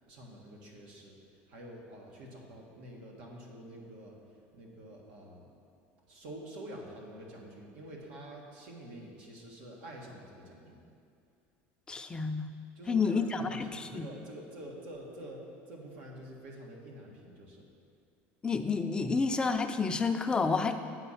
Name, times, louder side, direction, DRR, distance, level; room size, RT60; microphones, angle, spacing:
voice 1, 0.1-1.2 1.5-4.2 4.5-5.5 6.1-10.9 12.8-17.7, right 1 dB, 85° right, -1 dB, 1.5 m, -47 dB
voice 2, 11.9-12.5 12.9-14.1 18.4-20.8, left 4 dB, 15° left, 6 dB, 0.4 m, -30 dB
8.1 x 5.0 x 5.7 m, 2.4 s
supercardioid pair, 125°, 6 cm